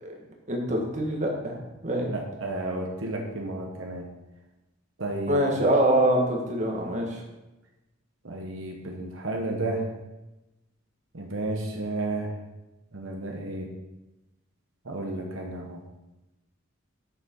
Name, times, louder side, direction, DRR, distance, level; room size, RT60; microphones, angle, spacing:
voice 1, 0.5-2.1 5.3-7.2, right 1 dB, 35° right, 0 dB, 1.5 m, -25 dB
voice 2, 2.1-4.0 5.0-5.4 8.2-9.8 11.1-12.3 12.9-13.7 14.8-15.8, right 2 dB, 75° right, 1 dB, 1.2 m, -32 dB
7.2 x 6.8 x 5.3 m, 1.0 s
head